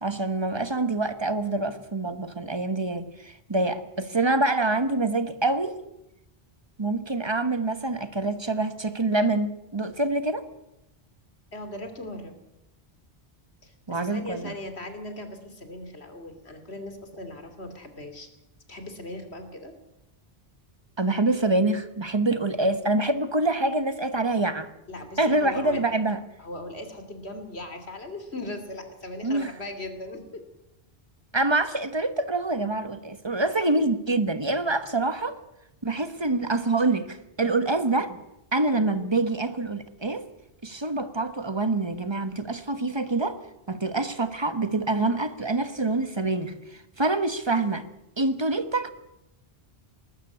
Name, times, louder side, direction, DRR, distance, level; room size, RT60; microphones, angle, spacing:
voice 1, 0.0-5.8 6.8-10.4 13.9-14.5 21.0-24.7 25.2-26.2 29.2-29.5 31.3-35.4 35.8-38.2 38.5-40.3 40.6-43.4 43.7-47.9 48.2-48.9, right 2 dB, 25° right, 1.3 m, -26 dB
voice 2, 11.5-12.3 13.6-18.3 18.7-19.7 24.9-25.8 26.4-30.4, left 1 dB, 90° left, 3.1 m, -38 dB
20.0 x 13.0 x 9.8 m
omnidirectional pair, 1.1 m